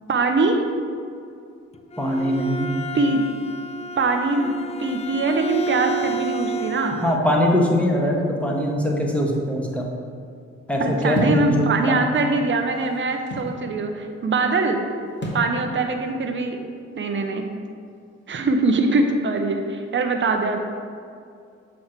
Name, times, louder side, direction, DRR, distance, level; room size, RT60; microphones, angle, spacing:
voice 1, 0.1-0.7 2.9-3.3 4.0-7.0 10.8-14.8 15.3-16.6 16.9-17.5 18.3-20.6, right 3 dB, 40° right, 4 dB, 0.8 m, -22 dB
Bowed string instrument, 1.7-7.3, right 2 dB, 20° left, 0.4 m, -31 dB
voice 2, 2.0-2.7 7.0-9.8 10.7-12.0, equal, 5° left, -2 dB, 1.4 m, -22 dB
sound 1, 11.1-11.5 12.4-13.6 15.2-15.5, left 1 dB, 35° left, 1.7 m, -26 dB
7.2 x 3.2 x 5.8 m, 2.4 s
cardioid pair, 60°, 29 cm